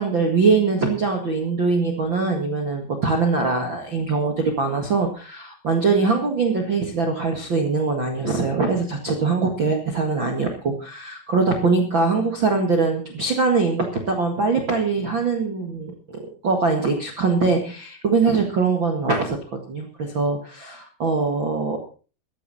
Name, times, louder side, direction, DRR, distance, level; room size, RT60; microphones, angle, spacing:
voice 1, 0.0-21.8, right 4 dB, 70° right, 2 dB, 1.1 m, -22 dB
15.5 x 13.0 x 4.2 m, 0.37 s
omnidirectional pair, 5.5 m